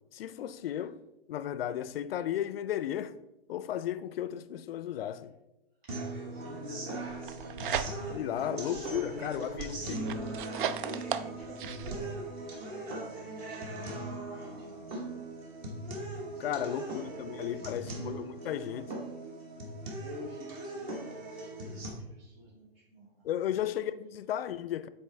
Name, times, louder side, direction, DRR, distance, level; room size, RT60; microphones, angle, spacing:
voice 1, 0.1-1.0 1.3-3.2 3.5-5.3 8.1-10.1 16.4-18.9 23.2-24.9, left 11 dB, 75° left, 0.5 m, -34 dB
sound 1, 5.9-21.9, right 2 dB, 30° right, 1.3 m, -40 dB
voice 2, 6.3-7.7 8.4-10.3 11.3-15.2 16.3-16.7 17.4-18.0 20.0-23.1 23.4-23.5, equal, 75° right, 2.3 m, -48 dB
sound 2, 7.1-8.3 8.7-12.0, right 8 dB, 60° right, 0.5 m, -36 dB
7.0 x 4.4 x 3.3 m
hypercardioid pair, 135°, 30 cm